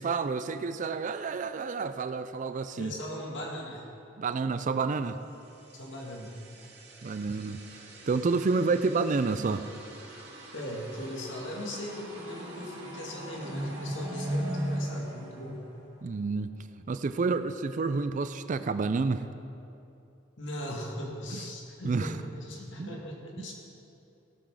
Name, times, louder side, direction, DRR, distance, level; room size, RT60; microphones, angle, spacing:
voice 1, 0.0-2.9 4.2-5.2 7.0-9.6 16.0-16.5 16.9-19.2 21.3-21.4 21.8-22.1 22.8-22.9 23.4-23.5, right 4 dB, 45° right, 11 dB, 0.4 m, -29 dB
voice 2, 2.8-3.9 5.7-6.4 10.5-15.6 20.4-23.5, left 1 dB, 80° left, -1 dB, 2.1 m, -39 dB
sound 1, 5.5-16.2, right 1 dB, 65° right, 2.6 m, -39 dB
17.5 x 6.1 x 6.3 m, 2.8 s
head